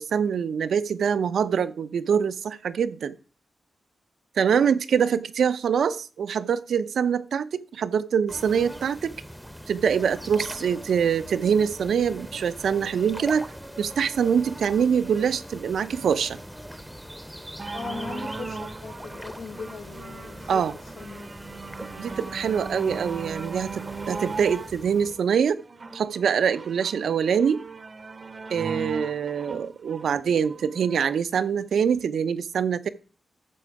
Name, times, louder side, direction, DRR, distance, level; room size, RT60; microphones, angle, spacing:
voice 1, 0.0-3.2 4.4-9.1 9.7-13.5 13.8-16.4 20.5-20.7 21.9-25.6 25.9-27.6 28.5-32.9, right 7 dB, 80° right, 0.7 m, -24 dB
voice 2, 4.5-5.0 17.7-20.6 21.0-21.3, left 5 dB, 90° left, 1.6 m, -39 dB
sound 1, 8.3-25.2, equal, ahead, 0.8 m, -41 dB
sound 2, 17.6-31.2 31.9-32.0, right 4 dB, 35° right, 0.7 m, -38 dB
13.0 x 7.6 x 4.8 m
wide cardioid pair, 140°, 0 cm